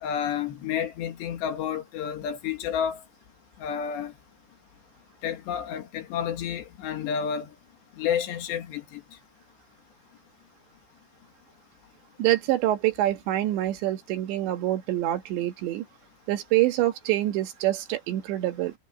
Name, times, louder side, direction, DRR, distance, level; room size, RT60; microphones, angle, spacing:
voice 1, 0.0-3.0 3.6-4.1 5.2-7.5 8.0-9.0, left 8 dB, 70° left, 3.9 m, -30 dB
voice 2, 12.2-15.8 16.3-18.7, right 14 dB, 75° right, 3.7 m, -26 dB
omnidirectional pair, 5.3 m